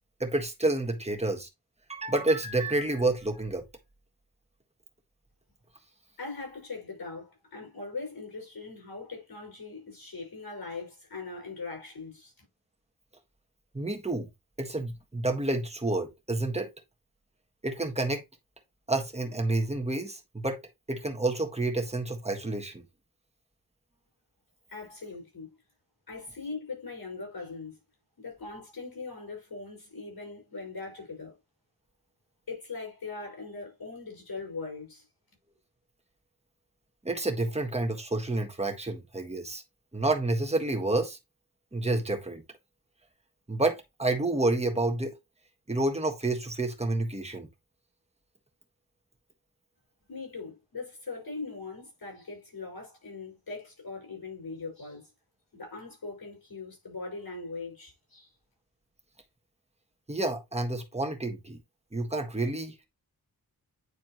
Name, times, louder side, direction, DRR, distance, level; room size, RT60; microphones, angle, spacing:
voice 1, 0.2-1.5 1.9-3.6 13.7-14.3 14.6-16.7 17.6-18.2 18.9-20.6 20.9-22.8 37.0-39.6 39.9-41.2 41.7-42.4 43.5-45.2 45.7-47.5 60.1-61.6 61.9-62.9, right 2 dB, 15° right, 1.5 m, -29 dB
voice 2, 6.2-12.4 24.7-25.5 26.1-27.8 28.2-31.4 32.5-35.0 50.1-55.1 55.5-58.3, left 3 dB, 80° left, 5.4 m, -40 dB
9.6 x 4.2 x 3.0 m
wide cardioid pair, 80°, 38 cm